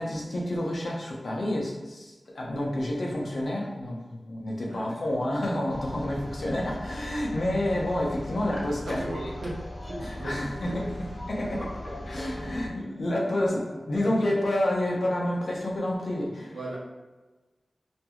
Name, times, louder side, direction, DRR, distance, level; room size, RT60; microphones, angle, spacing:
voice 1, 0.0-9.0 10.0-10.7 11.3-11.6 12.1-16.6, left 1 dB, 65° left, -2 dB, 0.6 m, -29 dB
sound 1, 5.7-12.7, left 1 dB, ahead, 0.6 m, -39 dB
voice 2, 8.8-9.6 9.9-11.1 11.4-11.7 16.5-16.8, right 1 dB, 90° right, -7 dB, 0.6 m, -37 dB
2.5 x 2.3 x 2.8 m, 1.2 s
wide cardioid pair, 90°, 0 cm